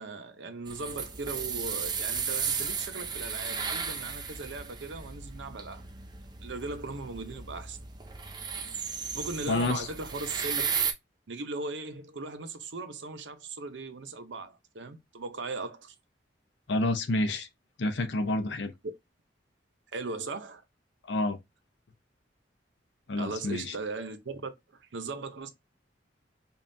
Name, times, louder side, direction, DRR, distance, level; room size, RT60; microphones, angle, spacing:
voice 1, 0.0-5.8 6.4-7.8 9.1-10.7 11.3-15.9 19.9-20.6 23.2-24.5 24.9-25.5, right 3 dB, 75° right, 0.7 m, -38 dB
sound 1, 0.7-10.9, right 6 dB, 25° right, 0.5 m, -35 dB
voice 2, 9.5-9.9 16.7-17.5 17.8-18.7 21.1-21.4 23.1-23.7, left 2 dB, 70° left, 0.6 m, -28 dB
5.2 x 2.4 x 2.6 m
head